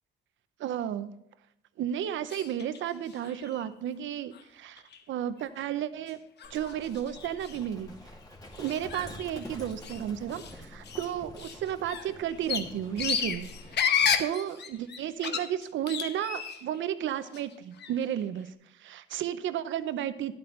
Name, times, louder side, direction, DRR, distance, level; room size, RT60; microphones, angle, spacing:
voice 1, 0.6-1.1 1.8-4.8 5.1-6.2 6.5-8.0 8.6-13.5 14.2-18.5 18.8-20.3, right 10 dB, 75° right, 12 dB, 0.7 m, -33 dB
sound 1, 2.3-2.8 3.1-3.7 4.3-4.4 4.8-5.0 5.4-5.6 6.1-6.2 6.4-7.7 8.5-10.0 10.3-10.5 10.8-16.8 17.1-18.0, left 7 dB, 60° left, 1.0 m, -33 dB
Livestock farm animals working animals, 6.4-13.8, left 1 dB, 20° left, 2.4 m, -47 dB
11.5 x 8.7 x 3.2 m, 0.82 s
cardioid pair, 90°, 20 cm